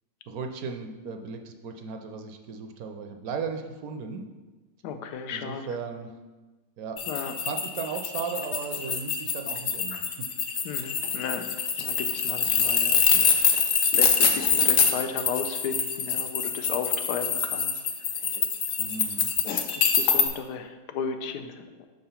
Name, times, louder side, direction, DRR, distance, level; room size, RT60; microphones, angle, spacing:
voice 1, 0.3-4.2 5.3-6.1 6.8-7.0 7.4-10.1 18.8-19.3, right 5 dB, 70° right, 5 dB, 1.0 m, -36 dB
voice 2, 4.8-5.7 7.1-7.3 10.6-11.5 11.8-13.6 13.9-17.7 19.8-21.9, left 6 dB, 85° left, 7 dB, 1.2 m, -34 dB
sound 1, 7.0-20.3, left 6 dB, 65° left, 1.0 m, -25 dB
5.8 x 3.8 x 5.6 m, 1.2 s
omnidirectional pair, 1.7 m